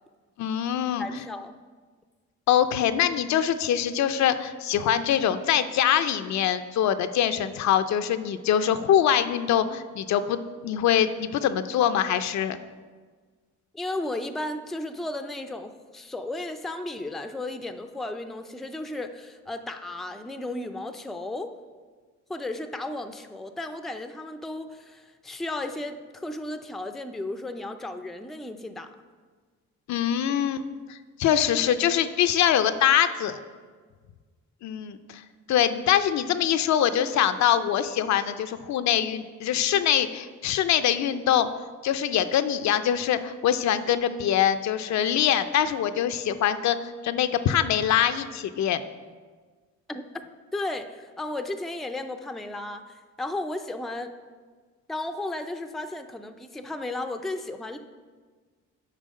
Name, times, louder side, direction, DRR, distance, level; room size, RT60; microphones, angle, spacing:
voice 1, 0.4-1.2 2.5-12.6 29.9-33.4 34.6-35.2 35.5-41.5 41.8-48.8, left 10 dB, 65° left, 10 dB, 0.5 m, -24 dB
voice 2, 1.0-1.5 13.7-21.5 22.3-28.9 49.9-50.0 50.5-54.1 54.9-57.8, left 2 dB, ahead, 7 dB, 0.4 m, -34 dB
7.5 x 4.8 x 5.2 m, 1.5 s
cardioid pair, 90°, 30 cm